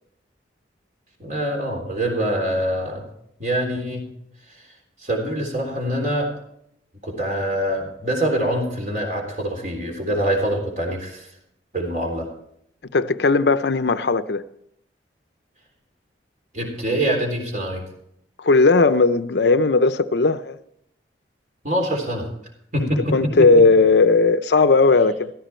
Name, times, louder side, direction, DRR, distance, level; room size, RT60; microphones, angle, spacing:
voice 1, 1.2-3.1 3.4-4.1 4.6-4.7 5.0-6.3 7.0-11.3 11.7-12.3 16.5-17.8 21.6-22.3 22.7-23.6, right 1 dB, 45° right, 3.7 m, -24 dB
voice 2, 12.9-14.4 18.4-20.6 22.8-25.3, left 3 dB, 70° left, 0.6 m, -17 dB
15.5 x 13.5 x 4.4 m
head